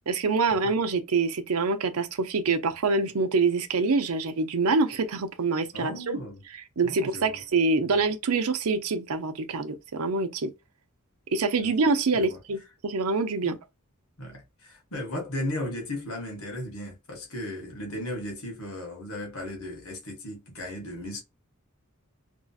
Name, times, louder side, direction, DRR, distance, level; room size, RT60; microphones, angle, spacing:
voice 1, 0.1-6.2 6.8-10.5 11.3-13.6, right 4 dB, 80° right, 0.6 m, -25 dB
voice 2, 5.7-6.4 6.8-7.4 7.8-8.0 11.6-11.7 12.1-12.4 13.4-13.6 14.2-21.2, left 1 dB, 70° left, 1.3 m, -36 dB
3.0 x 2.7 x 2.4 m
head